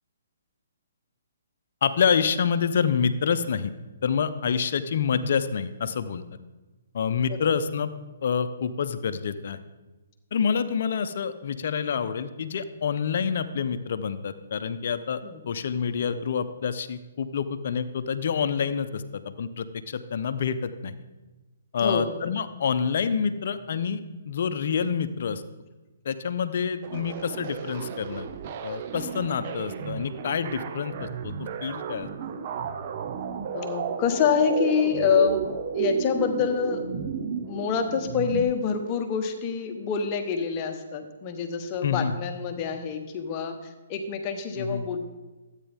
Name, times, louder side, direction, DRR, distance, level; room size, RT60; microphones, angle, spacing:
voice 1, 1.8-3.7 4.0-6.2 6.9-7.9 8.2-9.6 10.3-15.2 15.5-20.9 21.7-24.0 24.3-25.4 26.0-28.3 28.6-32.1 41.8-42.1 44.6-44.9, left 6 dB, 60° left, 11 dB, 0.7 m, -27 dB
sound 1, 26.8-38.4, right 7 dB, 40° right, 0.7 m, -33 dB
voice 2, 33.5-35.4 35.7-36.8 37.4-45.0, left 7 dB, 30° left, 5 dB, 1.2 m, -26 dB
12.5 x 9.0 x 3.6 m, 1.2 s
hypercardioid pair, 140°, 0 cm